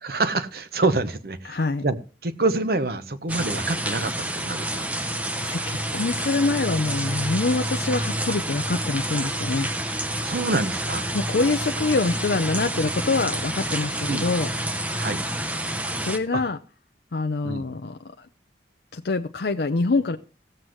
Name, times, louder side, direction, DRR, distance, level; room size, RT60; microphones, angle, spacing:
voice 1, 0.0-2.0 2.2-4.9 10.2-11.1 14.1-14.3 15.0-15.2 16.3-16.4 17.4-17.7, right 3 dB, 60° right, 12 dB, 0.9 m, -26 dB
voice 2, 1.5-1.8 5.3-9.7 11.1-14.5 15.9-16.6 17.1-18.3 18.9-20.2, left 3 dB, 65° left, 6 dB, 0.6 m, -25 dB
sound 1, 3.3-16.2, right 1 dB, 10° right, 0.7 m, -28 dB
17.0 x 7.7 x 3.1 m, 0.33 s
head